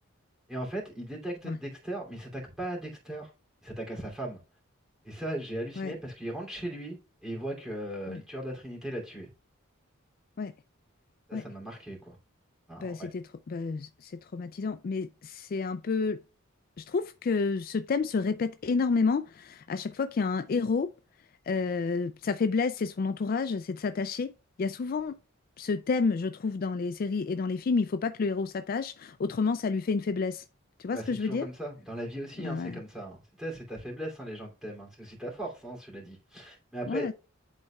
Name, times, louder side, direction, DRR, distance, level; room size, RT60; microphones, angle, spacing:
voice 1, 0.5-3.3 3.6-4.4 5.0-9.3 11.3-12.2 12.7-13.1 30.9-37.1, right 1 dB, 5° right, 2.7 m, -38 dB
voice 2, 12.8-16.2 16.8-20.9 21.5-24.3 24.6-25.2 25.6-30.4 30.8-31.5 32.4-32.8 36.9-37.1, left 4 dB, 45° left, 0.3 m, -30 dB
11.0 x 4.2 x 2.3 m
head